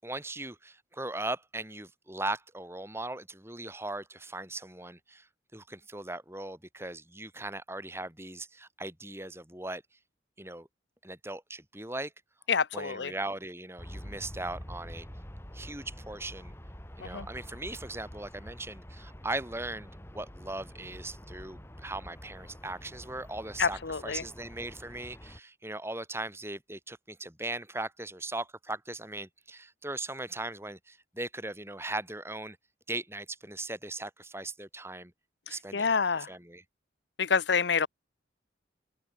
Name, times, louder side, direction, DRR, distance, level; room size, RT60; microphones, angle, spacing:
voice 1, 0.0-5.3 5.5-9.8 10.4-10.7 11.0-12.1 12.7-15.1 15.5-16.5 17.0-32.6 32.9-35.1 35.5-35.9 36.3-36.6, right 2 dB, 15° right, 7.4 m, -39 dB
voice 2, 12.5-13.1 17.0-17.3 23.6-24.2 35.5-36.3 37.2-37.9, left 5 dB, 65° left, 0.8 m, -28 dB
Aircraft, 13.8-25.4, equal, 15° left, 1.9 m, -47 dB
open air
head